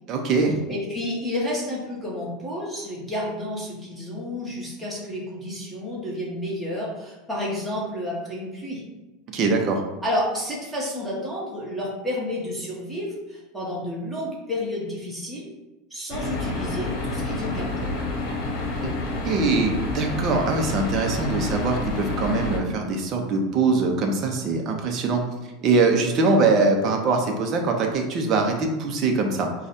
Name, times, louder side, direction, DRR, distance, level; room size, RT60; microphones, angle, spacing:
voice 1, 0.1-0.6 9.3-9.8 18.8-19.0 19.2-25.2 25.6-29.5, right 3 dB, 35° right, 2 dB, 0.8 m, -22 dB
voice 2, 0.7-8.8 10.0-15.4 15.9-17.9, left 1 dB, 5° right, -6 dB, 1.4 m, -30 dB
sound 1, 16.1-22.6, left 2 dB, 55° left, 1.0 m, -28 dB
4.7 x 2.4 x 4.2 m, 1.1 s
supercardioid pair, 145°, 0 cm